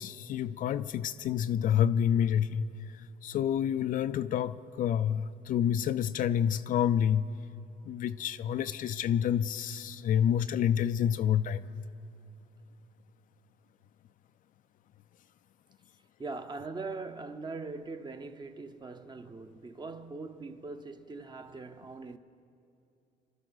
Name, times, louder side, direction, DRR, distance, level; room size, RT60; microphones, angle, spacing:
voice 1, 0.0-2.7 3.2-7.3 7.9-11.6, left 9 dB, 55° left, 0.4 m, -28 dB
voice 2, 16.2-22.2, right 3 dB, 25° right, 0.8 m, -41 dB
28.0 x 12.0 x 4.0 m
cardioid pair, 110°, 17 cm